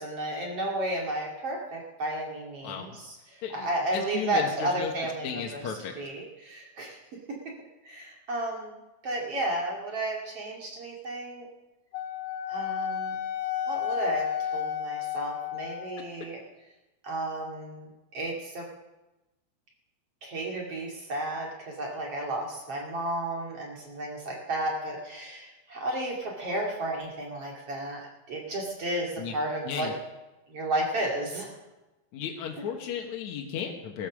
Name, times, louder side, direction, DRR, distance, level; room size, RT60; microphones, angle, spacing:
voice 1, 0.0-7.5 7.8-8.7 9.0-11.5 12.5-13.2 13.7-16.4 17.0-18.7 20.2-29.9 30.5-31.5, right 1 dB, 40° right, -1 dB, 2.8 m, -33 dB
voice 2, 2.6-3.0 3.4-3.7 3.9-4.9 5.2-5.9 29.2-29.3 29.7-29.9 32.1-34.1, left 8 dB, 60° left, 2 dB, 2.1 m, -34 dB
Wind instrument woodwind instrument, 11.9-16.1, left 9 dB, 90° left, 3.5 m, -32 dB
16.5 x 14.0 x 6.2 m, 1.0 s
omnidirectional pair, 4.8 m